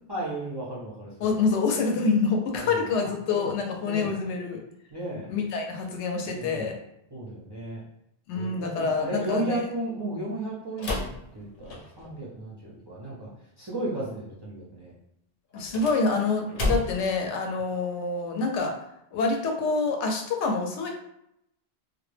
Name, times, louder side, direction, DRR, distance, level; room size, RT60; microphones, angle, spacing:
voice 1, 0.1-1.5 2.5-2.9 3.3-3.5 3.8-4.2 4.9-5.3 6.3-6.7 7.1-7.8 8.3-11.1 11.3-13.3 13.6-14.9, right 1 dB, 40° right, -7 dB, 0.3 m, -34 dB
voice 2, 1.2-4.6 5.3-6.7 8.3-9.6 15.5-18.7 19.1-20.9, left 4 dB, 85° left, 2 dB, 0.9 m, -26 dB
sound 1, 10.8-12.2 15.5-17.2, left 2 dB, 55° left, 0.7 m, -31 dB
2.2 x 2.1 x 3.2 m, 0.80 s
omnidirectional pair, 1.1 m